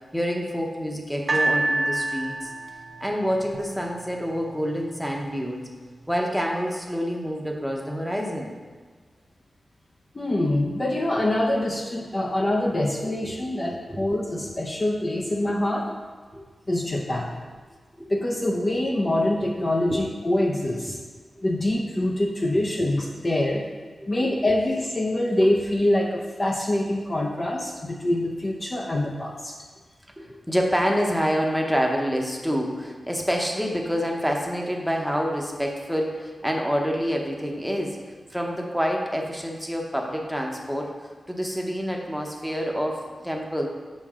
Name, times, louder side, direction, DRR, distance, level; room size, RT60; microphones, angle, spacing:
voice 1, 0.1-2.5 3.0-5.7 6.1-8.5 13.0-13.1 13.5-13.6 13.9-14.0 15.3-15.4 15.9-16.0 16.3-16.4 18.0-18.1 19.8-20.0 22.8-22.9 24.2-24.3 30.2-40.9 41.3-43.7, equal, ahead, 0 dB, 0.8 m, -27 dB
sound 1, 1.3-4.5 5.2-5.3, right 2 dB, 35° right, 0.7 m, -28 dB
voice 2, 10.1-15.9 16.7-17.3 18.1-21.0 21.4-23.6 24.1-29.5, left 1 dB, 30° left, -1 dB, 0.6 m, -25 dB
7.2 x 5.8 x 3.6 m, 1.5 s
wide cardioid pair, 145°, 0 cm